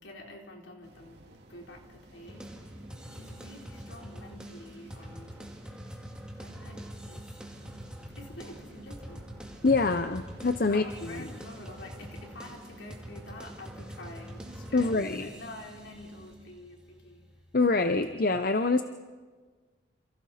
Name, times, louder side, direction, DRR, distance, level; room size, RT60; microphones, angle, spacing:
voice 1, 0.0-2.5 3.1-5.3 6.4-7.2 8.2-9.3 10.6-17.3, left 1 dB, 70° left, 0 dB, 3.9 m, -47 dB
sound 1, 0.8-16.4, right 1 dB, 55° right, 3.5 m, -53 dB
sound 2, 2.3-18.0, equal, 5° right, 2.2 m, -45 dB
voice 2, 9.6-11.3 14.7-15.3 17.5-18.8, left 3 dB, 45° left, 8 dB, 0.7 m, -25 dB
28.5 x 28.0 x 4.3 m, 1.5 s
head